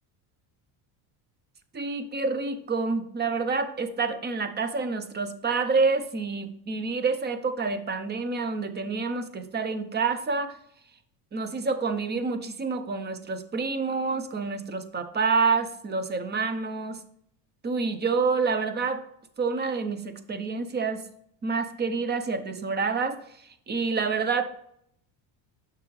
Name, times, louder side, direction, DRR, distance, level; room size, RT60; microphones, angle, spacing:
voice 1, 1.7-10.6 11.3-17.0 17.6-19.0 19.4-21.0 21.4-23.2 23.7-24.4, right 4 dB, 20° right, 10 dB, 0.7 m, -28 dB
9.5 x 6.0 x 3.2 m, 0.70 s
cardioid pair, 130°, 48 cm